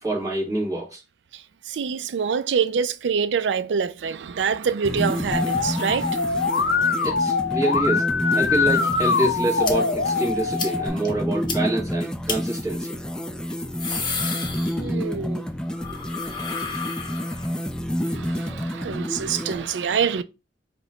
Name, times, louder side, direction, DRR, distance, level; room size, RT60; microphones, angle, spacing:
voice 1, 0.0-1.0 7.0-13.0, right 1 dB, 20° right, 1.4 m, -27 dB
voice 2, 1.3-6.6 14.8-15.5 18.0-20.2, right 6 dB, 90° right, 0.4 m, -26 dB
sound 1, 4.8-19.6, equal, 5° left, 0.3 m, -29 dB
Musical instrument, 5.3-10.9, left 4 dB, 80° left, 0.6 m, -23 dB
sound 2, 9.6-9.7 10.1-10.2 10.6-10.7 11.1-11.2 11.5-11.6 12.3-12.4 13.5-15.2 15.5-17.6, left 5 dB, 25° left, 0.8 m, -31 dB
5.0 x 2.2 x 3.8 m
head